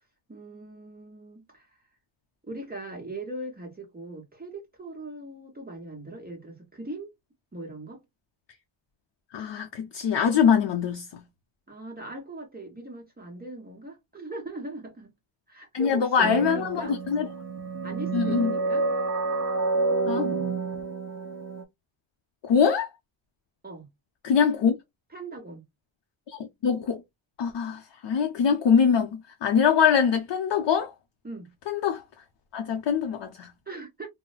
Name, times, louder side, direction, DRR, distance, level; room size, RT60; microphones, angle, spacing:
voice 1, 0.3-1.7 2.4-7.1 7.5-8.0 11.7-15.1 15.5-17.0 17.8-18.9 20.1-20.5 23.6-23.9 25.1-25.6 31.2-31.5 33.7-34.1, right 2 dB, 20° right, 0.9 m, -39 dB
voice 2, 9.3-11.2 15.7-17.3 18.1-18.5 20.1-20.2 22.4-22.9 24.2-24.8 26.3-27.0 27.4-30.9 31.7-32.0 32.5-33.5, left 7 dB, 60° left, 0.6 m, -23 dB
sound 1, 16.2-21.6, right 3 dB, 35° right, 0.6 m, -29 dB
3.9 x 2.1 x 2.3 m
wide cardioid pair, 170°, 48 cm